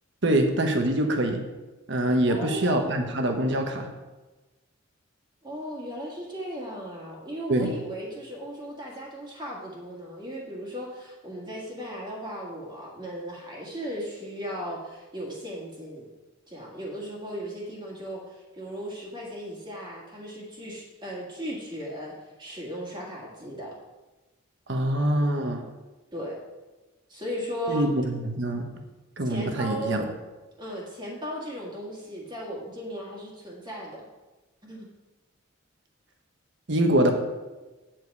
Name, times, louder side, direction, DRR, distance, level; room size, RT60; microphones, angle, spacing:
voice 1, 0.2-1.4 1.9-3.9 7.5-7.7 24.7-25.6 27.7-28.6 29.2-30.1 36.7-37.1, right 1 dB, 60° right, 4 dB, 1.3 m, -24 dB
voice 2, 2.3-3.0 5.4-16.1 16.5-23.7 26.1-26.4 27.1-27.9 29.2-30.1 30.6-34.1 34.6-34.9, equal, 20° right, -4 dB, 1.8 m, -36 dB
9.1 x 7.7 x 4.8 m, 1.2 s
head